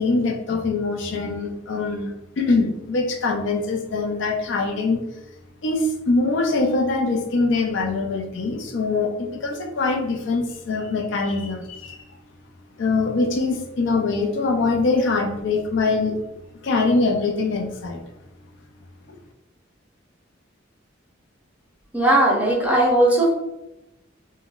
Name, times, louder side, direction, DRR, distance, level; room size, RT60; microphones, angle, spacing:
voice 1, 0.0-5.0 5.6-12.0 12.8-16.2 16.6-18.0 19.1-19.2, left 3 dB, 65° left, 2 dB, 0.4 m, -23 dB
voice 2, 21.9-23.3, right 1 dB, 10° right, -3 dB, 0.6 m, -18 dB
3.7 x 2.1 x 2.4 m, 0.93 s
head